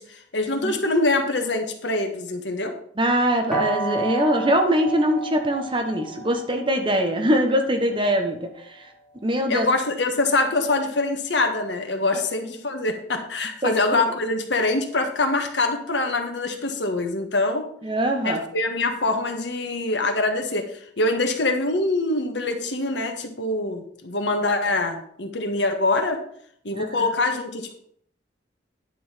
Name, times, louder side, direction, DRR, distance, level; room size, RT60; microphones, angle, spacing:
voice 1, 0.0-2.8 9.5-17.7 18.2-26.2 26.6-27.7, left 2 dB, 75° left, 5 dB, 1.5 m, -24 dB
voice 2, 3.0-8.9 9.2-9.7 13.6-14.0 17.8-18.4 26.7-27.1, equal, 30° right, 4 dB, 1.2 m, -23 dB
sound 1, 3.5-9.3, right 2 dB, ahead, 2.8 m, -32 dB
10.0 x 5.6 x 5.7 m, 0.64 s
head